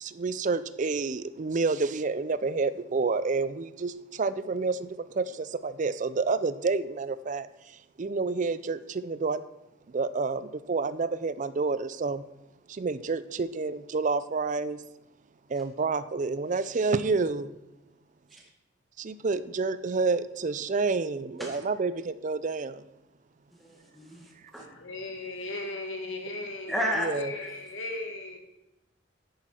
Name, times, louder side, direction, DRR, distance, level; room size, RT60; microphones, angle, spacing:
voice 1, 0.0-9.4 9.9-12.2 12.7-14.8 15.5-17.6 19.0-22.8 26.9-27.3, right 4 dB, 40° right, 0.4 m, -29 dB
voice 2, 23.6-24.2 24.5-24.6 26.7-27.1, equal, ahead, 1.8 m, -31 dB
voice 3, 24.6-28.4, left 2 dB, 70° left, 1.7 m, -37 dB
10.5 x 9.1 x 4.4 m
head